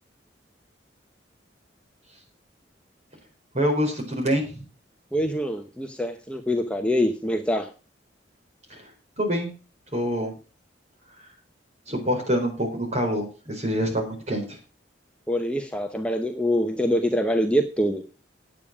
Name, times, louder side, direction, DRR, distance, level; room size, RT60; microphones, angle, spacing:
voice 1, 3.5-4.6 8.7-8.8 9.2-9.5 9.9-10.3 11.9-14.5, equal, 40° right, 1 dB, 4.3 m, -25 dB
voice 2, 5.1-7.7 15.3-18.0, equal, 5° left, 4 dB, 0.8 m, -25 dB
9.3 x 8.6 x 6.1 m, 0.35 s
head